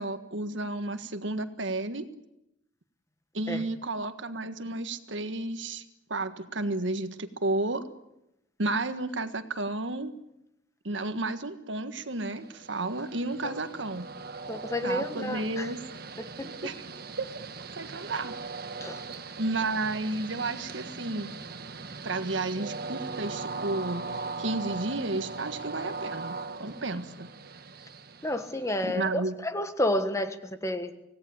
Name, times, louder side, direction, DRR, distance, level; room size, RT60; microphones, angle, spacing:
voice 1, 0.0-2.1 3.3-5.8 6.1-7.9 8.6-10.1 10.8-14.1 14.8-15.8 16.6-16.7 17.2-18.3 19.4-21.3 22.0-24.0 24.4-27.3 28.8-29.3, right 2 dB, 70° right, 9 dB, 1.6 m, -32 dB
Train, 12.2-29.0, right 4 dB, 50° right, 1.4 m, -40 dB
voice 2, 14.5-15.7 16.2-16.5 18.8-19.0 28.2-30.9, left 1 dB, 15° left, 9 dB, 1.3 m, -30 dB
25.5 x 17.5 x 8.7 m, 0.85 s
head